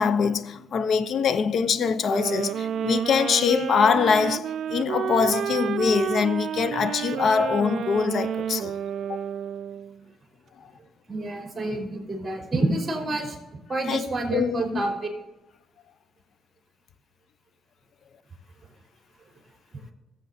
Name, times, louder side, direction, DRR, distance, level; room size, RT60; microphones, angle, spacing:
voice 1, 0.0-8.7 9.1-9.2 13.9-14.0 14.3-14.8, left 6 dB, 60° left, 0.7 m, -23 dB
sound 1, 2.1-10.0, right 9 dB, 70° right, 0.3 m, -30 dB
voice 2, 11.1-13.4 13.7-14.9, right 2 dB, 25° right, 3.5 m, -28 dB
17.5 x 7.5 x 2.7 m
cardioid pair, 90°, 0 cm